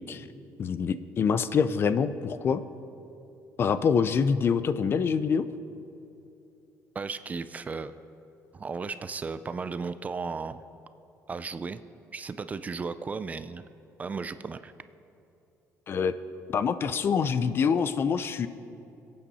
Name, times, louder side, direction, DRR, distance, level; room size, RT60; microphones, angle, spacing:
voice 1, 0.6-2.6 3.6-5.4 15.9-16.1 16.5-18.5, left 6 dB, 40° left, 13 dB, 0.5 m, -25 dB
voice 2, 6.9-7.9 8.5-10.6 11.3-11.8 12.1-13.6 14.0-14.7, right 4 dB, 25° right, 12 dB, 0.4 m, -35 dB
22.5 x 8.7 x 4.2 m, 2.8 s
cardioid pair, 130°, 6 cm